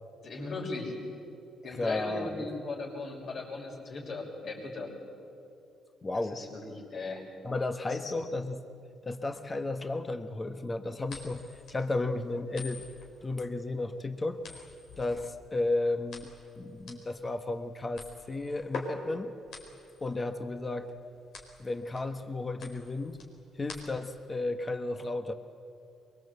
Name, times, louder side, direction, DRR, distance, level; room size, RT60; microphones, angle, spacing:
voice 1, 0.2-0.9 1.6-4.9 6.3-7.2 7.9-8.1, left 3 dB, 55° left, 0 dB, 5.8 m, -38 dB
voice 2, 1.6-2.5 6.0-6.4 7.4-8.6 9.0-11.4 11.7-12.8 13.2-14.6 15.0-16.3 16.6-18.0 18.3-19.3 20.0-20.9 21.6-23.2 23.6-25.3, left 2 dB, 25° left, 7 dB, 1.4 m, -33 dB
sound 1, 11.0-24.2, left 3 dB, 75° left, 4.5 m, -46 dB
23.5 x 22.5 x 8.2 m, 2.6 s
cardioid pair, 90°, 0 cm